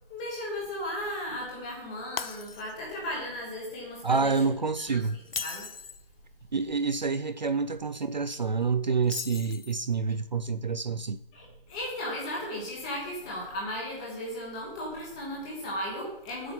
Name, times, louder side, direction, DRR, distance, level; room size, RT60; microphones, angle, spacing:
voice 1, 0.1-4.4 4.8-5.1 5.4-5.7 11.3-16.5, left 1 dB, 5° left, -2 dB, 1.0 m, -36 dB
Shatter, 2.2-3.0 3.4-3.6 5.2-6.1 9.0-9.9, left 6 dB, 85° left, 0.6 m, -38 dB
voice 2, 4.0-5.2 6.5-11.2, right 4 dB, 50° right, 11 dB, 0.5 m, -28 dB
8.1 x 7.3 x 5.7 m, 0.81 s
figure-of-eight pair, 160°, 29 cm